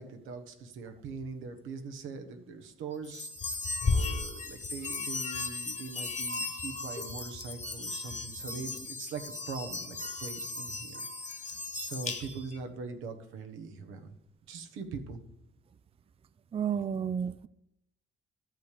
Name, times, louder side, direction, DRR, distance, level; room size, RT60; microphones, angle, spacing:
voice 1, 0.0-3.6 3.8-11.1 11.4-14.1 14.5-15.2, right 4 dB, 90° right, 1.3 m, -42 dB
sound 1, 3.0-12.6, left 3 dB, 35° left, 1.5 m, -35 dB
voice 2, 16.5-17.5, right 7 dB, 30° right, 0.4 m, -31 dB
12.0 x 6.9 x 5.0 m
cardioid pair, 90°, 20 cm